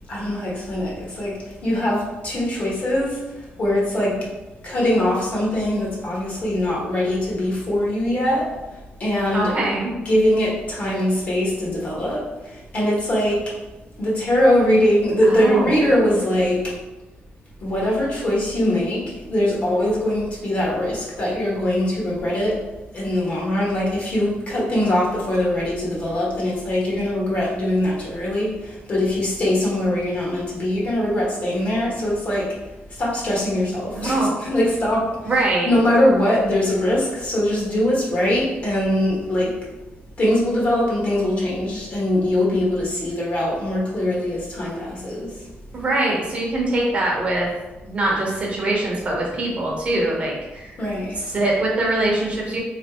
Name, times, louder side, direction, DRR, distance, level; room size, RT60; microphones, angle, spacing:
voice 1, 0.1-3.2 3.6-4.3 4.6-8.5 9.0-12.2 12.7-13.4 14.0-16.6 17.6-22.6 22.9-28.6 28.9-32.5 33.0-39.5 40.2-45.3 50.8-51.2, left 1 dB, 40° left, -5 dB, 1.3 m, -22 dB
voice 2, 9.3-9.9 15.3-15.8 33.9-34.4 35.3-35.7 45.7-47.5 47.8-50.8 51.2-52.6, right 2 dB, 35° right, -3 dB, 0.8 m, -23 dB
3.7 x 3.2 x 2.9 m, 1.1 s
wide cardioid pair, 160°, 4 cm